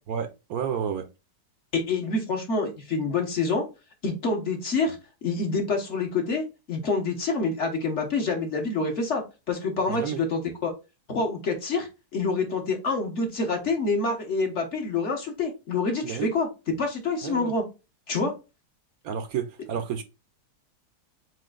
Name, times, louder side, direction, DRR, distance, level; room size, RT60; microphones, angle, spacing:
voice 1, 0.1-1.1 9.9-10.2 16.0-16.3 17.2-17.5 19.0-20.0, right 8 dB, 70° right, 1.0 m, -31 dB
voice 2, 1.7-3.6 4.0-5.0 5.2-9.2 9.5-10.7 11.1-16.5 16.8-17.6 18.1-18.3, left 3 dB, 50° left, 1.4 m, -27 dB
7.5 x 2.8 x 2.4 m
omnidirectional pair, 1.7 m